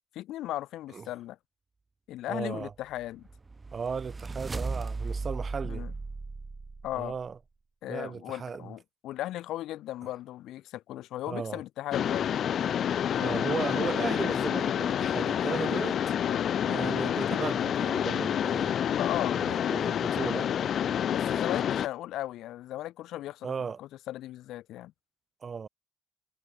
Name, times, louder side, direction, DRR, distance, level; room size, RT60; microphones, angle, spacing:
voice 1, 0.1-1.4 2.1-3.3 5.6-5.9 6.8-7.1 7.8-12.3 16.2-16.5 18.9-19.4 21.1-23.5 23.8-24.9, left 14 dB, 85° left, 3.1 m, -36 dB
voice 2, 2.3-2.7 3.7-5.9 6.9-7.4 7.9-8.7 11.3-11.6 13.2-16.0 16.7-18.8 19.3-20.5 23.4-23.8 25.4-25.7, right 6 dB, 45° right, 2.4 m, -36 dB
sound 1, 3.0-7.2, right 3 dB, 25° right, 3.5 m, -36 dB
Mechanisms, 11.9-21.9, left 9 dB, 65° left, 1.2 m, -28 dB
cardioid pair, 90°, 0 cm